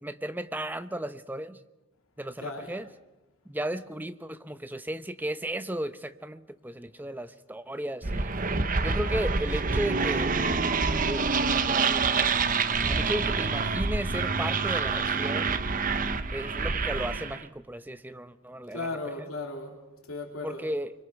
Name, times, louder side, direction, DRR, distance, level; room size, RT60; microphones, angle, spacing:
voice 1, 0.0-1.6 2.2-2.9 3.5-8.3 8.8-10.3 11.1-12.3 12.9-15.6 16.3-18.9 19.2-19.3 20.4-20.9, right 1 dB, 10° right, 11 dB, 0.7 m, -35 dB
voice 2, 2.4-2.8 18.7-20.7, left 3 dB, 85° left, 1 dB, 3.3 m, -36 dB
sound 1, 8.0-17.4, right 4 dB, 40° right, 0.9 m, -27 dB
26.0 x 24.0 x 5.9 m, 0.99 s
head